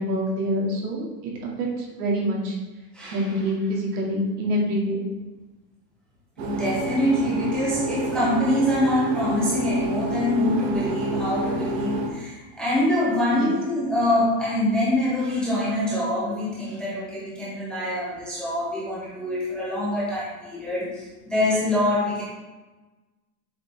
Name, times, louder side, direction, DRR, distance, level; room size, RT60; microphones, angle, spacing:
voice 1, 0.0-1.3 1.6-2.6 3.1-5.0 13.3-13.5, equal, 65° right, -2 dB, 2.3 m, -26 dB
voice 2, 2.9-3.4 6.4-22.2, left 1 dB, ahead, -8 dB, 0.5 m, -25 dB
sound 1, 6.4-12.1, right 2 dB, 40° right, 1.1 m, -28 dB
7.4 x 4.9 x 3.4 m, 1.2 s
supercardioid pair, 160°, 50 cm